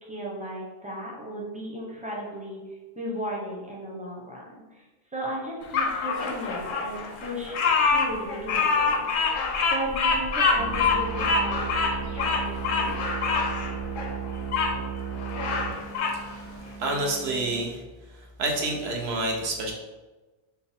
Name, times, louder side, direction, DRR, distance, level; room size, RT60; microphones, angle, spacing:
voice 1, 0.0-2.6 3.0-4.8 5.1-7.6 7.8-9.4 9.7-11.8 12.1-13.0, right 1 dB, 10° right, -3 dB, 0.6 m, -36 dB
Bird vocalization bird call bird song, 5.7-14.7 15.2-16.2, left 4 dB, 60° left, 0.6 m, -25 dB
sound 1, 10.6-17.6, right 7 dB, 55° right, 0.6 m, -35 dB
voice 2, 16.8-17.8 18.4-19.7, right 2 dB, 75° right, 0 dB, 1.0 m, -28 dB
4.3 x 2.2 x 3.5 m, 1.2 s
omnidirectional pair, 1.1 m